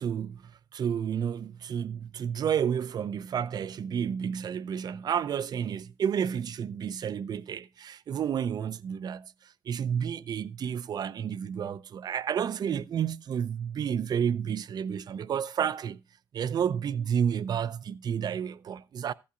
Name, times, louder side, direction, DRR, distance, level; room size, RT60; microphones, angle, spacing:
voice 1, 0.0-16.0 16.3-19.1, right 8 dB, 50° right, 0.5 m, -31 dB
14.5 x 8.5 x 2.4 m
supercardioid pair, 65°, 9 cm